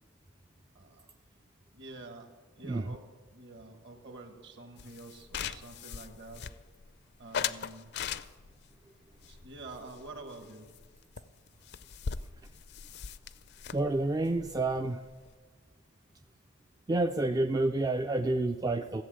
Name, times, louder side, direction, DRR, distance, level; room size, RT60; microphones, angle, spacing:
voice 1, 0.7-1.1 1.7-2.3 2.6-6.5 7.2-7.9 9.3-10.7, right 2 dB, 60° right, 6 dB, 1.5 m, -48 dB
sound 1, 4.8-6.9 7.3-8.6 9.2-10.5 10.7-10.9 11.2-11.3 11.5-15.3, left 7 dB, 55° left, 0.4 m, -39 dB
voice 2, 13.7-15.0 16.9-19.0, right 2 dB, 20° right, 7 dB, 0.3 m, -29 dB
14.5 x 7.9 x 7.6 m, 1.4 s
head